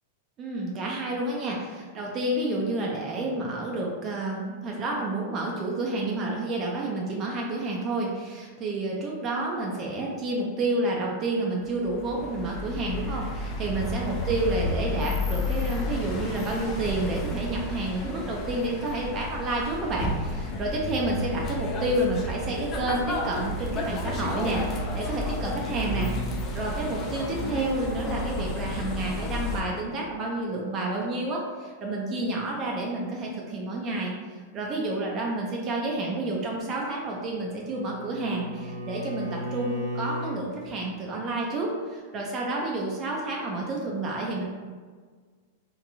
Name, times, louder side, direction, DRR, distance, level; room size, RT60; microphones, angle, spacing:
voice 1, 0.4-26.1 26.5-34.1 34.5-44.4, right 2 dB, 35° right, -2 dB, 0.4 m, -30 dB
sound 1, 11.6-29.6, left 1 dB, 30° left, 0.4 m, -31 dB
Bowed string instrument, 37.0-40.4, equal, 70° right, 1.0 m, -36 dB
2.9 x 2.2 x 2.6 m, 1.5 s
hypercardioid pair, 125°, 0 cm